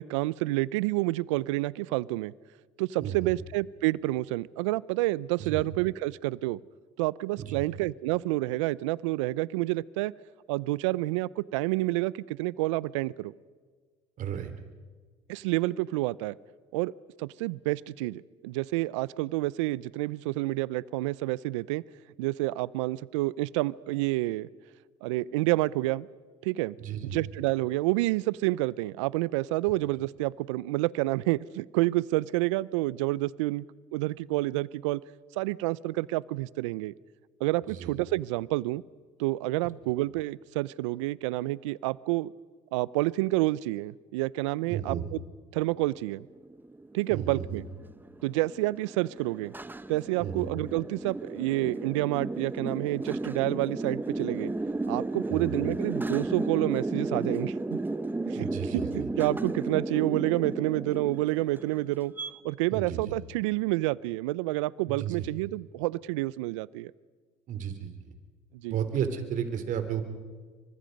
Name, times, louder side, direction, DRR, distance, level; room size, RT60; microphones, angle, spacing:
voice 1, 0.0-2.3 2.8-6.6 7.0-10.1 10.5-13.3 15.3-16.4 16.7-21.8 22.2-24.5 25.0-26.1 26.4-26.8 27.0-33.6 33.9-35.0 35.4-36.9 37.4-38.8 39.2-42.3 42.7-45.2 45.5-46.3 46.9-47.6 48.2-49.5 49.9-54.5 54.9-57.8 58.3-62.1 62.4-66.9 68.6-68.8, right 19 dB, 80° right, 22 dB, 0.6 m, -29 dB
voice 2, 3.0-3.3 5.4-5.6 7.4-7.6 14.2-14.5 26.8-27.2 37.7-37.9 44.6-45.0 47.1-47.6 50.2-50.5 55.3-55.5 58.3-59.1 62.7-63.1 64.9-65.3 67.5-68.1 68.7-70.0, right 8 dB, 60° right, 9 dB, 3.3 m, -33 dB
sound 1, 45.9-62.3, right 2 dB, 10° right, 1.2 m, -34 dB
28.5 x 25.0 x 5.3 m, 1.5 s
hypercardioid pair, 65°, 15 cm